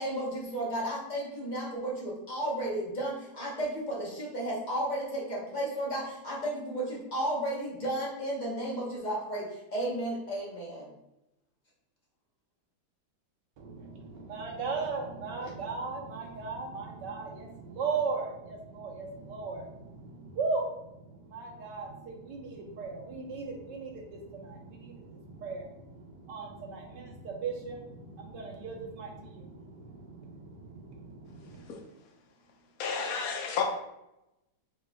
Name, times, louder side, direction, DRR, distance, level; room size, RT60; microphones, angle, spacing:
voice 1, 0.0-10.9, right 1 dB, 30° left, -5 dB, 1.0 m, -33 dB
voice 2, 13.6-31.7, right 4 dB, 90° right, 0 dB, 1.5 m, -37 dB
voice 3, 32.8-33.6, left 6 dB, 65° left, 1 dB, 1.1 m, -31 dB
5.0 x 3.5 x 2.3 m, 0.87 s
omnidirectional pair, 1.8 m